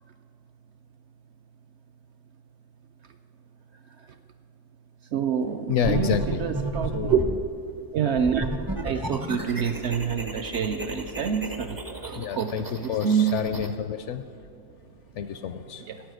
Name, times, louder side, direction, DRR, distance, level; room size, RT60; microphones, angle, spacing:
voice 1, 5.1-7.2 7.9-13.3 15.9-16.0, right 7 dB, 65° right, 7 dB, 0.7 m, -27 dB
voice 2, 5.7-6.4 6.9-7.3 12.1-14.2 15.1-15.9, left 8 dB, 65° left, 10 dB, 0.7 m, -29 dB
sound 1, 5.8-7.4 8.1-13.7, right 2 dB, 25° right, 0.4 m, -33 dB
10.5 x 8.2 x 7.7 m, 2.4 s
omnidirectional pair, 1.5 m